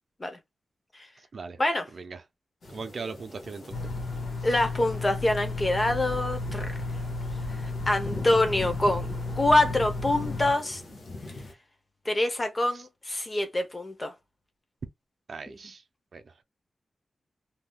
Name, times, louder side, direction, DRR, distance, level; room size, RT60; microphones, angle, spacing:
voice 1, 1.2-1.6 1.9-2.2 2.7-3.9 4.4-4.6 12.7-12.9 15.3-15.8 16.1-16.4, right 4 dB, 55° right, 0.5 m, -40 dB
sound 1, 2.6-11.5, left 2 dB, 70° left, 1.0 m, -43 dB
sound 2, 3.7-10.5, left 3 dB, 90° left, 1.6 m, -33 dB
voice 2, 4.4-7.0 7.9-9.1 9.4-10.8 12.1-14.1, left 1 dB, 25° left, 0.7 m, -25 dB
3.5 x 2.7 x 2.3 m
wide cardioid pair, 140°, 0 cm